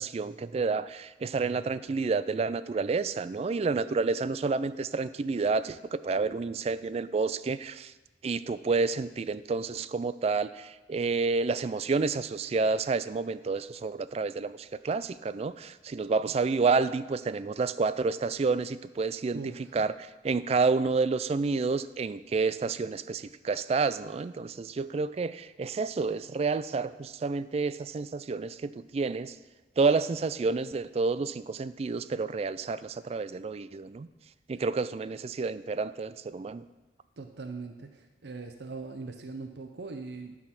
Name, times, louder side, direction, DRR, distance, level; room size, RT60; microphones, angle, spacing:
voice 1, 0.0-7.9 8.2-19.4 19.7-29.4 29.8-34.1 34.5-36.6, right 4 dB, 35° right, 15 dB, 0.3 m, -29 dB
voice 2, 19.3-19.7 37.2-40.4, right 3 dB, 75° right, 6 dB, 0.7 m, -40 dB
12.0 x 4.8 x 5.9 m, 1.2 s
head